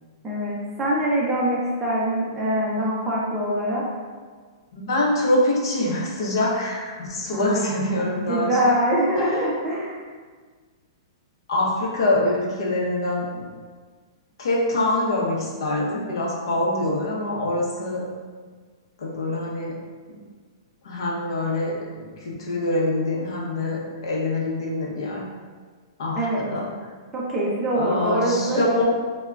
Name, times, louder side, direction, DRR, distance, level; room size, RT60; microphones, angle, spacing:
voice 1, 0.2-3.8 7.3-10.0 26.2-26.4 27.1-28.7, right 1 dB, 10° right, -7 dB, 0.4 m, -24 dB
voice 2, 4.7-8.8 9.2-9.3 11.5-13.4 14.4-18.1 19.0-19.8 20.1-20.2 20.8-21.8 22.2-25.2 26.0-26.7 27.7-28.8, left 1 dB, 70° left, -2 dB, 0.7 m, -24 dB
3.5 x 2.1 x 2.2 m, 1.5 s
hypercardioid pair, 160°, 3 cm